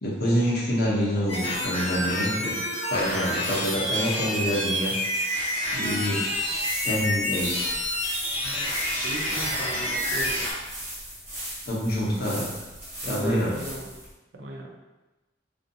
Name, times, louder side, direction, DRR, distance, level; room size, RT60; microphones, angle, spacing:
voice 1, 0.0-2.6 2.9-4.9 5.4-6.2 6.8-7.6 11.7-12.5 13.0-13.5, equal, 60° left, -5 dB, 0.8 m, -26 dB
sound 1, 1.3-10.5, left 1 dB, 35° left, 0.8 m, -28 dB
sound 2, 6.4-14.1, right 1 dB, 15° right, 0.8 m, -37 dB
voice 2, 9.0-10.3 13.0-13.9 14.3-14.7, right 2 dB, 90° right, 0 dB, 0.5 m, -35 dB
2.6 x 2.4 x 2.6 m, 1.1 s
head